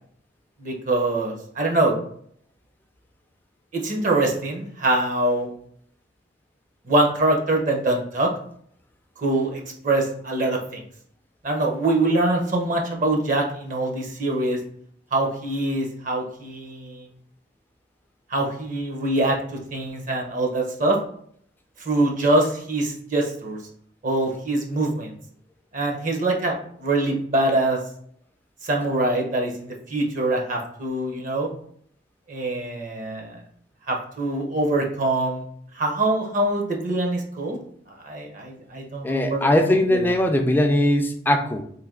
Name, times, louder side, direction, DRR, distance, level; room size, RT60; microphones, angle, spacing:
voice 1, 0.6-1.9 3.7-5.5 6.9-8.3 9.2-10.8 11.4-14.6 15.1-17.1 18.3-19.4 19.7-21.0 21.9-23.6 24.0-25.1 25.7-27.8 28.6-31.5 32.3-33.4 33.9-35.4 35.8-37.6 38.0-39.5 39.9-40.0, right 2 dB, 45° right, 2 dB, 0.7 m, -24 dB
voice 2, 39.0-41.6, left 1 dB, 10° left, 4 dB, 0.4 m, -20 dB
3.2 x 2.6 x 3.7 m, 0.63 s
head